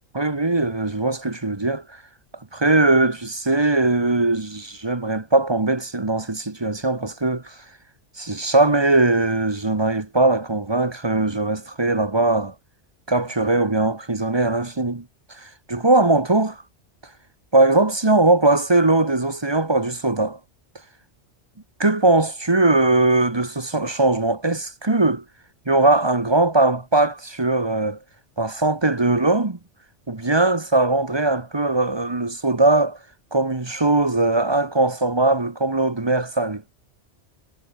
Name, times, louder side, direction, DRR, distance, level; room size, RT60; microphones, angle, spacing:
voice 1, 0.1-2.0 2.5-7.6 8.2-12.5 13.1-15.0 15.3-16.6 17.5-20.4 21.8-25.2 25.7-28.0 28.4-29.6 30.1-33.0 33.3-36.6, right 2 dB, 25° right, 1.2 m, -20 dB
omnidirectional pair, 1.2 m